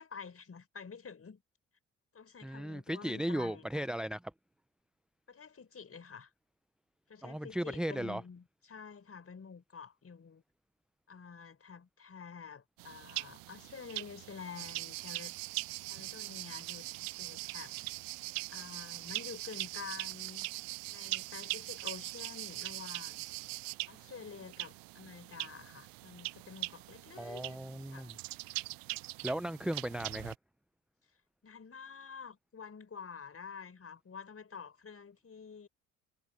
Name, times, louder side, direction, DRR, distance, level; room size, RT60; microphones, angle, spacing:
voice 1, 0.0-1.4 2.1-3.9 5.3-6.3 7.1-10.4 11.1-15.3 15.8-17.7 18.5-20.5 20.9-23.2 23.9-27.6 27.9-28.1 31.4-35.7, left 6 dB, 35° left, 5.6 m, -49 dB
voice 2, 2.4-4.2 7.2-8.2 27.2-28.2 29.2-30.3, right 1 dB, ahead, 0.8 m, -36 dB
sound 1, 12.8-30.4, right 23 dB, 60° right, 0.5 m, -44 dB
sound 2, 14.5-23.7, right 26 dB, 75° right, 1.5 m, -43 dB
hypercardioid pair, 55°, 40 cm